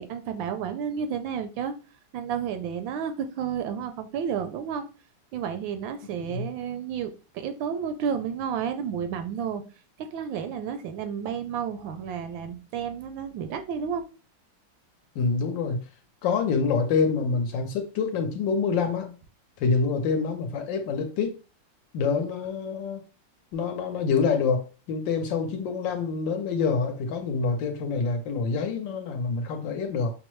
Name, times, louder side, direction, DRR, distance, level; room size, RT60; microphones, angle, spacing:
voice 1, 0.0-1.7 2.1-4.9 5.3-9.6 10.0-14.0, right 7 dB, 75° right, 1.2 m, -31 dB
voice 2, 15.1-15.8 16.2-19.2 19.6-21.4 21.9-23.0 23.5-30.1, left 5 dB, 70° left, 1.3 m, -26 dB
6.0 x 2.0 x 3.0 m
omnidirectional pair, 2.2 m